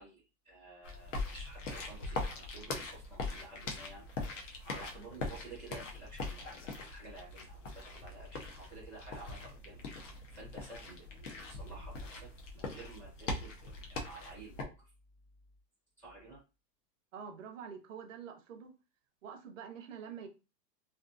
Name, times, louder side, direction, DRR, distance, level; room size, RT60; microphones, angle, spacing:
voice 1, 0.0-9.8 10.3-14.9 16.0-16.4, right 2 dB, 5° left, -6 dB, 0.8 m, -52 dB
sound 1, 0.8-14.6, left 3 dB, 50° left, 0.7 m, -42 dB
voice 2, 17.1-18.7 19.2-20.3, right 7 dB, 50° right, 5 dB, 0.7 m, -46 dB
2.5 x 2.5 x 2.5 m, 0.29 s
hypercardioid pair, 165°, 50 cm